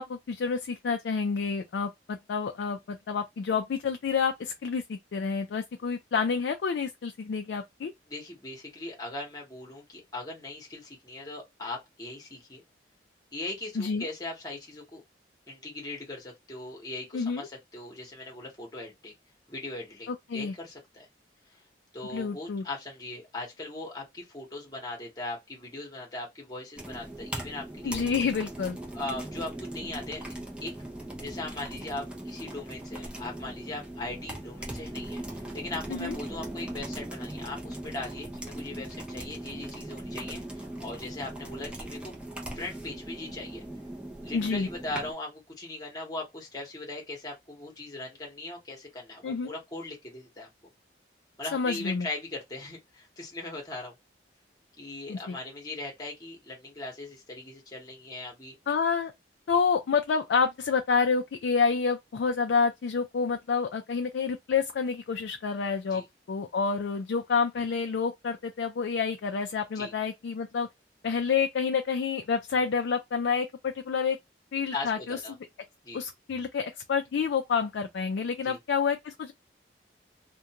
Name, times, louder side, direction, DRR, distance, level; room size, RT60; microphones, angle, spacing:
voice 1, 0.0-7.9 13.8-14.0 17.1-17.5 20.1-20.5 22.1-22.6 27.8-28.8 35.9-36.2 44.3-44.7 49.2-49.5 51.5-52.1 55.1-55.4 58.7-59.1 59.5-66.0 66.3-70.7 71.0-74.2 74.5-75.2 75.9-79.3, left 5 dB, 70° left, 0.3 m, -28 dB
voice 2, 8.1-12.6 13.3-15.0 15.5-19.1 19.5-21.1 21.5-21.6 21.9-28.0 28.9-30.3 30.6-30.7 31.2-42.1 42.5-43.6 44.2-50.5 51.4-53.9 54.8-58.6 65.9-66.0 69.7-69.9 74.7-75.3 75.8-76.0 78.4-78.6, left 2 dB, 20° left, 0.9 m, -39 dB
sound 1, 26.8-45.1, right 1 dB, 5° right, 0.5 m, -39 dB
2.5 x 2.2 x 2.8 m
head